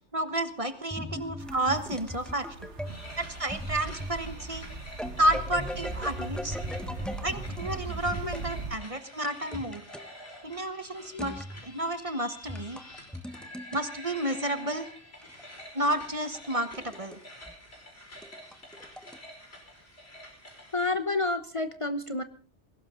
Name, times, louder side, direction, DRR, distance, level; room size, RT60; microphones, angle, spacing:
voice 1, 0.1-2.5 3.2-4.7 5.2-6.6 7.2-9.8 10.4-12.8 13.7-14.9 15.7-17.2, right 1 dB, 30° right, 10 dB, 1.4 m, -31 dB
sound 1, 0.9-8.5 9.5-10.1 11.2-11.6 12.4-13.8 15.2-17.2 17.5-17.6 18.1-19.2, equal, ahead, 1.2 m, -39 dB
sound 2, 1.4-8.8, right 4 dB, 80° right, 1.7 m, -40 dB
sound 3, 2.8-20.9, left 1 dB, 65° left, 5.4 m, -48 dB
voice 2, 20.7-22.2, left 2 dB, 30° left, 8 dB, 1.0 m, -30 dB
21.0 x 17.5 x 3.9 m, 0.37 s
omnidirectional pair, 1.2 m